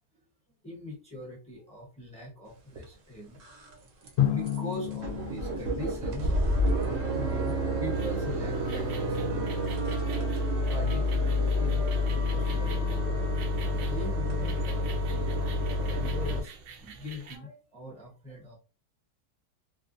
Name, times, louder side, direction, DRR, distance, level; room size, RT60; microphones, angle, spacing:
voice 1, 0.6-6.3 7.1-13.1 13.5-16.5 16.8-18.6, left 1 dB, 5° left, -3 dB, 0.8 m, -42 dB
sound 1, 2.8-2.9 3.4-3.7 4.1-4.2 4.5-4.6 4.8-16.4, left 1 dB, 60° right, 1.0 m, -29 dB
Drum, 4.2-6.8, left 11 dB, 65° left, 0.6 m, -31 dB
sound 2, 7.9-17.4, right 5 dB, 80° right, 1.2 m, -48 dB
3.4 x 2.2 x 2.5 m, 0.32 s
omnidirectional pair, 1.8 m